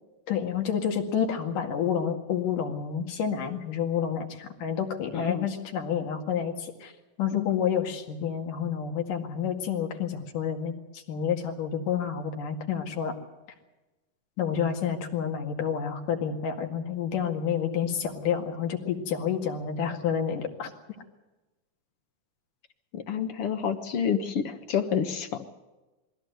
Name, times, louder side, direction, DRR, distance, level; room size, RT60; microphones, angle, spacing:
voice 1, 0.3-6.9 7.2-13.2 14.4-20.7, left 8 dB, 75° left, 3 dB, 3.6 m, -29 dB
voice 2, 5.1-5.5 7.3-7.5 22.9-25.5, left 7 dB, 55° left, 8 dB, 1.8 m, -29 dB
23.0 x 16.0 x 8.1 m, 1.1 s
omnidirectional pair, 3.8 m